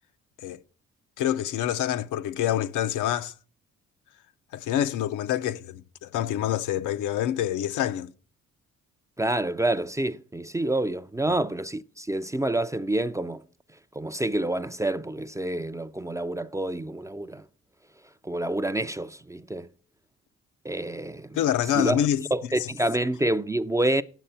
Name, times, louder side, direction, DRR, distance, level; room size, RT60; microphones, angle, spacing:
voice 1, 1.2-3.3 4.5-8.1 11.3-11.4 21.3-22.3, left 11 dB, 80° left, 0.6 m, -26 dB
voice 2, 9.2-13.4 14.0-17.4 18.2-19.7 20.6-21.4 21.7-22.0 22.3-24.0, right 1 dB, 10° right, 0.4 m, -28 dB
9.1 x 6.6 x 5.6 m
cardioid pair, 90°, 30 cm